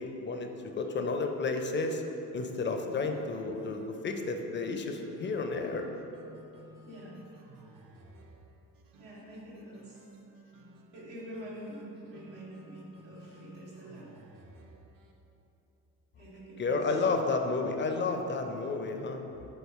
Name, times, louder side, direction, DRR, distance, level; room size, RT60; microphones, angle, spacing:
voice 1, 0.0-2.0 2.3-5.9 16.6-19.2, left 3 dB, 25° left, 5 dB, 0.4 m, -31 dB
sound 1, 2.3-15.2, right 2 dB, 45° right, 0.6 m, -55 dB
voice 2, 6.8-7.2 9.0-10.0 10.9-14.1 16.2-16.9, equal, 80° right, -7 dB, 1.2 m, -46 dB
5.3 x 3.9 x 2.4 m, 3.0 s
hypercardioid pair, 45°, 46 cm